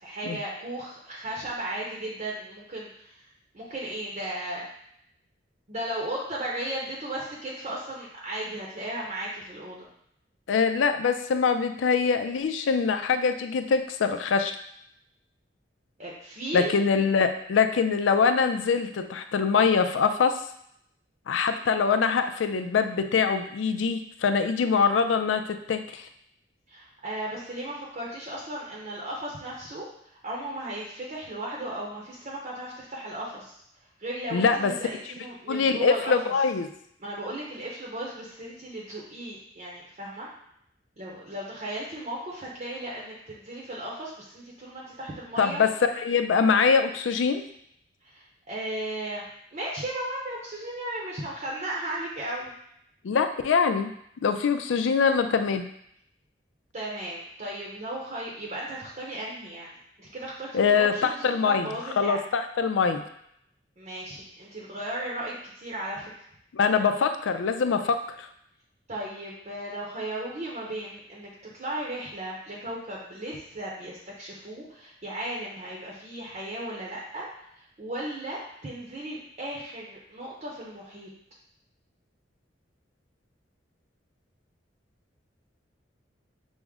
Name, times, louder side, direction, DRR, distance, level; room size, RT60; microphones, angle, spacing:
voice 1, 0.0-3.2 3.5-4.6 5.7-9.9 16.0-16.7 26.7-29.9 30.2-33.5 34.0-36.3 37.0-40.3 41.0-45.6 48.1-52.5 56.7-62.2 63.8-66.1 68.9-77.3 77.8-81.1, right 1 dB, 40° right, -4 dB, 0.7 m, -36 dB
voice 2, 10.5-14.6 16.5-20.4 21.3-26.1 34.3-34.7 35.5-36.7 45.4-47.4 53.0-53.9 54.2-55.7 60.5-63.0 66.5-68.3, left 5 dB, 90° left, 8 dB, 0.4 m, -24 dB
6.1 x 2.1 x 3.5 m, 0.72 s
head